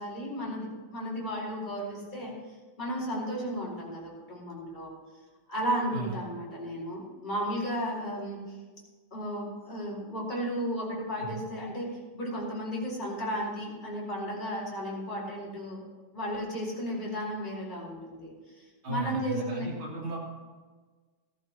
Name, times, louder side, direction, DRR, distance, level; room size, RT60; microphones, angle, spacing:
voice 1, 0.0-2.3 2.8-4.9 5.5-8.6 9.1-15.8 16.1-19.7, equal, 20° left, -6 dB, 4.6 m, -34 dB
voice 2, 18.8-20.2, right 2 dB, 65° right, -5 dB, 4.3 m, -35 dB
16.5 x 14.5 x 3.0 m, 1.4 s
omnidirectional pair, 2.4 m